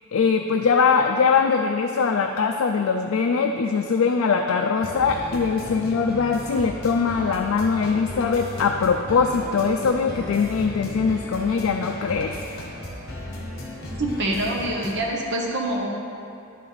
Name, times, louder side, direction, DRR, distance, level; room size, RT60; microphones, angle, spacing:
voice 1, 0.1-12.3, left 5 dB, 70° left, 3 dB, 0.4 m, -22 dB
sound 1, 4.7-15.0, left 1 dB, 50° left, 1.2 m, -36 dB
voice 2, 14.0-15.9, right 1 dB, 55° right, -1 dB, 1.0 m, -25 dB
10.5 x 4.6 x 4.0 m, 2.7 s
head